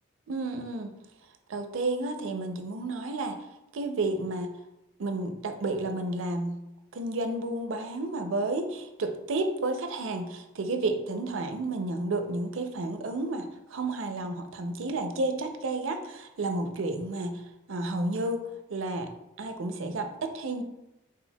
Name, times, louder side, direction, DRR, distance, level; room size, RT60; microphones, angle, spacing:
voice 1, 0.3-1.0 1.5-3.4 3.7-4.5 5.0-6.6 6.9-17.4 17.7-19.1 19.4-20.6, right 2 dB, 80° right, 6 dB, 0.5 m, -31 dB
4.4 x 3.7 x 2.2 m, 0.90 s
head